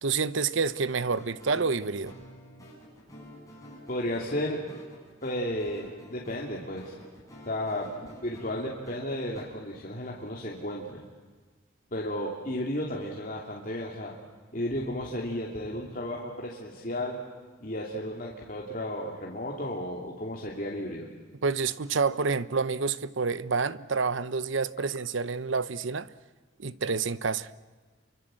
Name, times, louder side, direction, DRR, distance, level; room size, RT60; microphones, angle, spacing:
voice 1, 0.0-2.2 21.4-26.1 26.6-27.5, right 4 dB, 75° right, 0.8 m, -28 dB
sound 1, 1.1-9.4, equal, 15° left, 7.7 m, -49 dB
voice 2, 3.9-4.6 5.2-6.9 7.5-7.9 8.2-11.0 11.9-14.1 14.5-17.2 17.6-21.1, left 1 dB, 45° left, 2.9 m, -33 dB
28.5 x 24.5 x 7.7 m
head